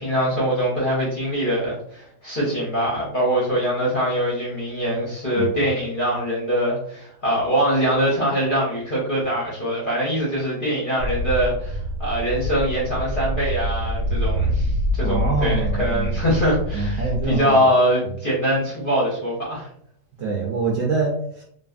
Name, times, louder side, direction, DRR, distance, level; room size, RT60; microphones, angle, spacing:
voice 1, 0.0-19.7, equal, 45° left, -6 dB, 0.7 m, -23 dB
sound 1, 11.0-17.4, equal, 90° right, 1.2 m, -25 dB
voice 2, 15.0-16.3 16.7-17.6 18.0-18.1 20.2-21.4, right 4 dB, 70° right, -3 dB, 0.7 m, -25 dB
2.6 x 2.5 x 2.3 m, 0.67 s
omnidirectional pair, 1.8 m